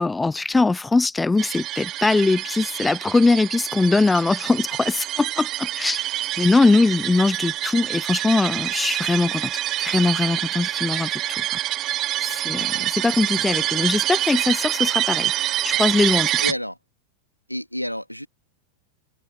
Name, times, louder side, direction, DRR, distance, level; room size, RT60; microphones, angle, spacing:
voice 1, 0.0-9.5 9.8-11.4 12.2-15.3 15.6-16.4, left 3 dB, 10° left, 0.3 m, -21 dB
sound 1, 1.4-16.5, right 14 dB, 35° right, 0.6 m, -26 dB
voice 2, 12.6-13.1 16.4-16.8 17.5-18.3, equal, 90° left, 2.8 m, -30 dB
open air
figure-of-eight pair, 90°, 0 cm